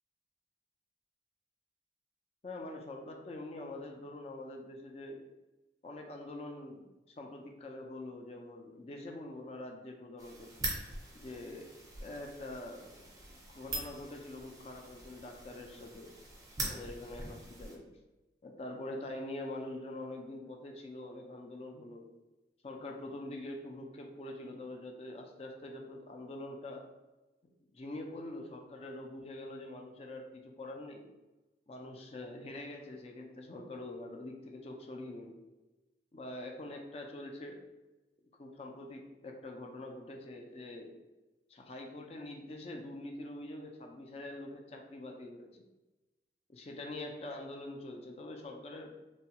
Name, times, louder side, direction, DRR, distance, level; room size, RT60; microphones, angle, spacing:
voice 1, 2.4-5.2 5.8-6.8 7.2-10.5 11.1-11.7 12.0-12.9 13.5-16.1 16.6-17.9 18.4-22.1 22.6-26.9 27.7-31.1 31.7-35.4 36.1-37.6 38.4-40.9 41.5-45.6 46.5-49.0, left 1 dB, 35° left, 2 dB, 0.4 m, -44 dB
sound 1, 10.2-17.7, right 2 dB, 20° right, 0.6 m, -43 dB
3.1 x 2.2 x 2.8 m, 1.1 s
head